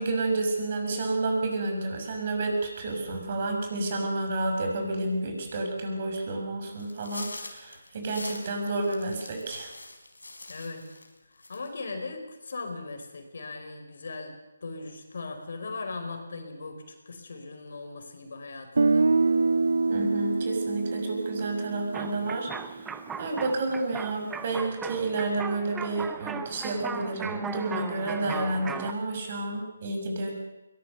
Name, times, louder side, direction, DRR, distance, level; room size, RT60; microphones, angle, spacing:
voice 1, 0.0-9.7 19.9-22.5 22.7-22.9 23.2-30.4, right 2 dB, 40° right, 3 dB, 6.7 m, -30 dB
sound 1, 6.8-11.1 11.4-11.9, left 2 dB, 90° left, 4.4 m, -43 dB
voice 2, 10.5-10.8 11.5-14.4 14.6-19.1, left 3 dB, 60° left, 6 dB, 4.6 m, -38 dB
Guitar, 18.8-22.7, right 3 dB, 70° right, 0.7 m, -25 dB
sound 2, 21.9-28.9, right 6 dB, 5° right, 0.7 m, -38 dB
22.0 x 19.5 x 6.9 m, 1.0 s
figure-of-eight pair, 155°, 0 cm